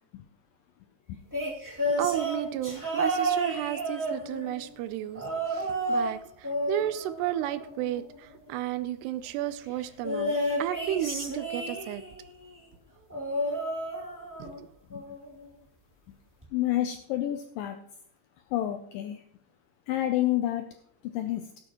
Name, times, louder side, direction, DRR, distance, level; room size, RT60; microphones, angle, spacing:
sound 1, 1.3-4.6 5.1-6.1 6.4-8.0 10.0-12.2 13.1-14.6 14.9-15.3 16.4-16.5, right 1 dB, 5° right, 1.4 m, -31 dB
voice 1, 2.0-10.3 10.6-12.0 14.4-14.7, right 12 dB, 90° right, 13 dB, 2.8 m, -33 dB
voice 2, 16.5-17.8 18.5-19.2 19.9-20.7 21.1-21.4, left 13 dB, 80° left, 6 dB, 2.0 m, -29 dB
17.5 x 9.0 x 3.0 m, 0.68 s
omnidirectional pair, 4.7 m